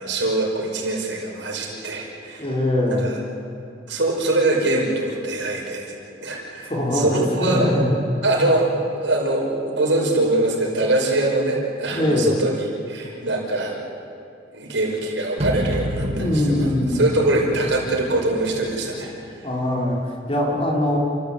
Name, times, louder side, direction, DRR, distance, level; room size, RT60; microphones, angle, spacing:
voice 1, 0.0-2.5 2.9-3.1 3.9-5.9 6.2-7.7 8.2-12.6 12.9-13.8 14.5-19.1, right 2 dB, 70° right, -2 dB, 5.7 m, -23 dB
voice 2, 2.4-3.1 6.7-7.9 11.9-12.3 16.1-17.1 19.4-20.0 20.3-21.0, left 1 dB, 30° left, -2 dB, 4.1 m, -22 dB
sound 1, 15.4-19.4, equal, 35° right, 2.2 m, -29 dB
30.0 x 15.0 x 8.7 m, 2.5 s
head